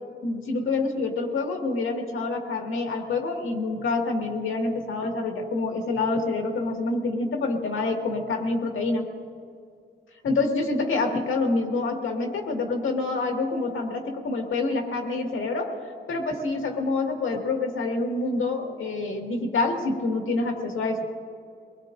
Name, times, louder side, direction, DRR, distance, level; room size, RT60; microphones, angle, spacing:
voice 1, 0.2-9.1 10.2-15.8 16.1-21.0, left 3 dB, 80° left, 2 dB, 1.9 m, -27 dB
24.0 x 20.0 x 2.6 m, 2.3 s
wide cardioid pair, 155°, 20 cm